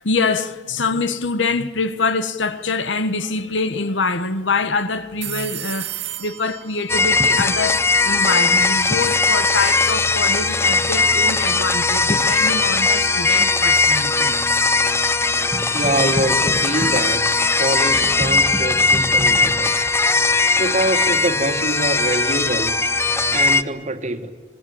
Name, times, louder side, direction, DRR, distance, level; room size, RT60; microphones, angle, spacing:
voice 1, 0.0-14.4 20.1-20.5 20.8-20.9 23.3-23.4, left 4 dB, 80° left, 1.4 m, -24 dB
sound 1, 2.5-2.8 3.1-3.2 5.0-8.1, right 13 dB, 70° right, 1.0 m, -34 dB
sound 2, 6.9-23.6, left 3 dB, 15° left, 0.6 m, -18 dB
voice 2, 15.7-19.9 20.6-22.8 23.3-24.3, right 2 dB, 40° right, 1.7 m, -24 dB
24.5 x 21.5 x 8.8 m
head